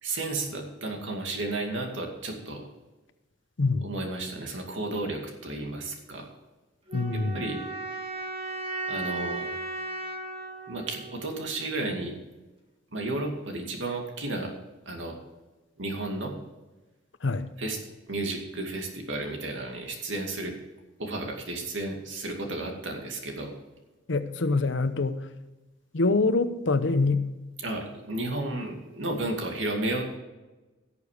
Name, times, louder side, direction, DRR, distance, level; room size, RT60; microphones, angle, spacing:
voice 1, 0.0-2.6 3.8-6.3 7.1-7.6 8.9-9.5 10.7-12.1 12.9-14.5 14.9-15.2 15.8-16.4 17.6-17.8 18.1-20.6 21.0-23.5 27.6-30.2, right 2 dB, 70° right, 2 dB, 2.3 m, -33 dB
voice 2, 3.6-3.9 6.9-7.6 17.2-17.5 24.1-25.3 25.9-27.3, left 3 dB, 65° left, 11 dB, 0.8 m, -25 dB
sound 1, 6.9-11.9, right 2 dB, 25° right, 1.8 m, -36 dB
17.0 x 6.9 x 5.0 m, 1.1 s
head